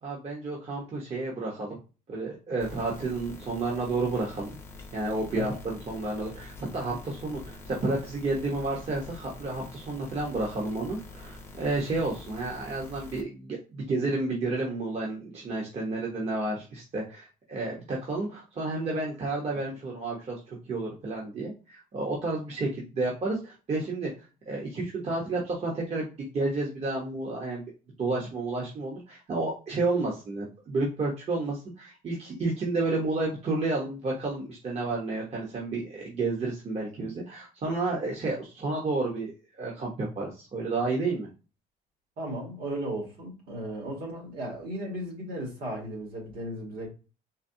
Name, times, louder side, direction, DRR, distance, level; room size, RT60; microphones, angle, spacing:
voice 1, 0.0-1.7 2.1-4.6 4.9-24.1 24.5-27.6 28.0-39.3 39.6-41.3, right 2 dB, 40° right, 1.1 m, -31 dB
sound 1, 2.6-13.2, left 3 dB, 15° left, 0.8 m, -46 dB
voice 2, 42.2-46.9, right 1 dB, 65° right, 2.0 m, -35 dB
4.0 x 2.3 x 2.8 m
cardioid pair, 110°, 17 cm